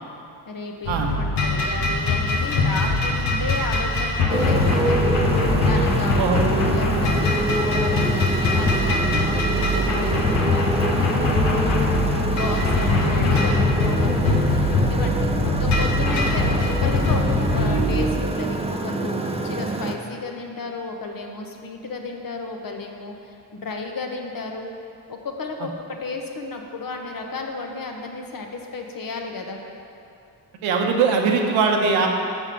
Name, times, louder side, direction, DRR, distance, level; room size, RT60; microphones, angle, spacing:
voice 1, 0.5-5.0 5.6-11.9 12.3-14.3 14.9-15.3 15.6-24.7 25.1-29.6, left 3 dB, 45° left, 2 dB, 1.1 m, -33 dB
sound 1, 0.8-18.1, left 2 dB, 80° left, 1.0 m, -22 dB
Motorcycle, 4.3-20.0, right 2 dB, 15° right, 0.6 m, -26 dB
voice 2, 30.6-32.1, right 5 dB, 80° right, 2 dB, 0.9 m, -21 dB
5.3 x 5.2 x 6.5 m, 2.6 s
hypercardioid pair, 40°, 47 cm